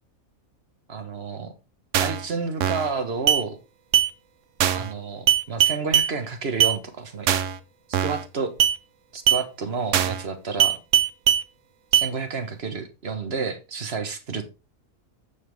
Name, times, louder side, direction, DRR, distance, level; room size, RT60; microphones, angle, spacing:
voice 1, 0.9-1.5 2.0-3.6 4.7-7.3 8.0-8.5 9.1-10.8 11.9-14.5, right 4 dB, 50° right, 8 dB, 1.4 m, -30 dB
sound 1, 1.9-2.2 2.6-2.9 3.3-3.4 3.9-4.1 4.6-4.9 5.3-6.1 6.6-6.8 7.3-7.6 7.9-8.2 8.6-8.8 9.3-9.4 9.9-10.2 10.6-11.4 11.9-12.1, right 9 dB, 65° right, 1.0 m, -20 dB
10.0 x 7.3 x 3.4 m, 0.28 s
omnidirectional pair, 1.5 m